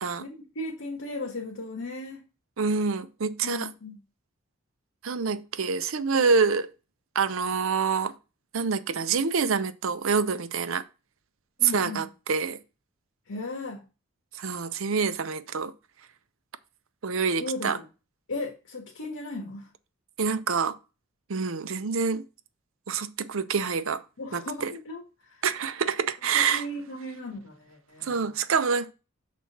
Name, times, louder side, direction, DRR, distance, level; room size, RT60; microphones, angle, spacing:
voice 1, 0.2-2.2 3.4-4.0 11.6-12.1 13.3-13.8 17.4-17.9 18.3-19.7 24.2-25.4 26.3-28.3, left 2 dB, 85° left, 1.6 m, -36 dB
voice 2, 2.6-3.7 5.0-6.7 7.1-8.1 8.5-10.8 11.6-12.6 14.3-15.7 17.0-17.8 20.2-20.8 21.3-22.2 22.9-24.0 24.3-24.7 25.4-26.7 28.0-28.9, right 5 dB, 70° right, 0.6 m, -26 dB
6.2 x 4.1 x 5.8 m
head